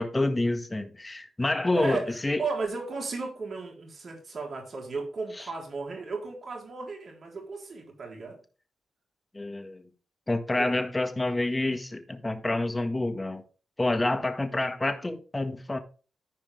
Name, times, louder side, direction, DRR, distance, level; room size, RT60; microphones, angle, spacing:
voice 1, 0.0-2.4 5.3-5.5 9.3-9.9 10.3-13.4 13.8-15.8, left 2 dB, 20° left, 1.7 m, -28 dB
voice 2, 1.7-8.4 10.6-10.8, right 4 dB, 55° right, 3.8 m, -35 dB
14.0 x 5.0 x 3.6 m
cardioid pair, 55°, 0 cm